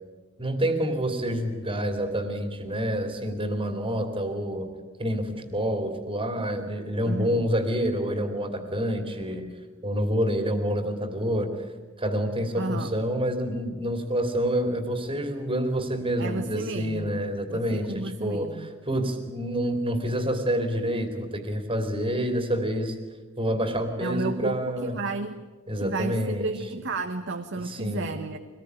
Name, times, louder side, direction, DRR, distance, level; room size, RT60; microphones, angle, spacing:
voice 1, 0.4-4.7 5.0-9.4 9.8-11.5 12.0-23.0 23.4-24.9 25.7-26.5 27.6-28.2, equal, 25° right, 6 dB, 2.9 m, -28 dB
voice 2, 7.1-7.5 12.6-13.0 16.2-17.2 17.5-18.7 24.0-25.4 25.7-28.4, right 3 dB, 60° right, 6 dB, 1.3 m, -32 dB
24.5 x 20.0 x 9.6 m, 1.4 s
head